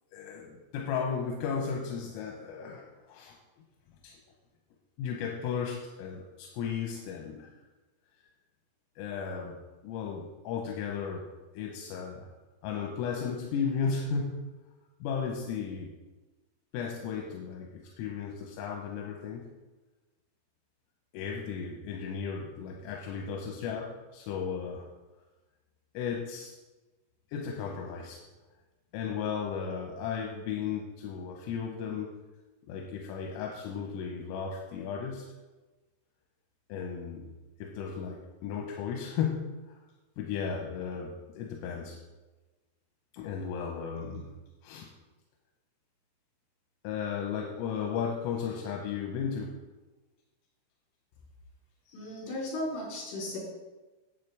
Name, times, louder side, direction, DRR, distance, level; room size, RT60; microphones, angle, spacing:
voice 1, 0.1-3.4 4.0-4.2 5.0-7.5 9.0-9.6 9.8-11.2 11.5-12.3 12.6-14.4 15.0-15.9 16.7-19.5 21.1-24.9 26.0-26.5 27.3-28.2 28.9-32.1 32.7-35.3 36.7-37.3 37.6-39.8 40.2-42.0 43.1-44.3 44.6-44.9 46.8-49.6, left 6 dB, 90° left, 0 dB, 3.5 m, -35 dB
voice 2, 51.9-53.4, left 1 dB, 70° left, -5 dB, 5.9 m, -36 dB
11.5 x 7.8 x 3.4 m, 1.2 s
omnidirectional pair, 5.9 m